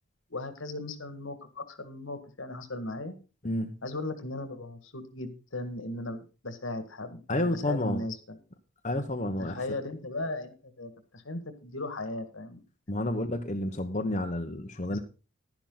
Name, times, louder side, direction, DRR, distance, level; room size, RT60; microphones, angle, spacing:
voice 1, 0.3-3.1 3.8-8.4 9.4-12.6 14.9-15.0, left 2 dB, 70° left, 10 dB, 1.9 m, -37 dB
voice 2, 3.4-3.7 7.3-8.0 8.8-9.6 12.9-15.0, left 1 dB, 35° left, 4 dB, 1.1 m, -30 dB
12.0 x 10.5 x 3.9 m, 0.33 s
head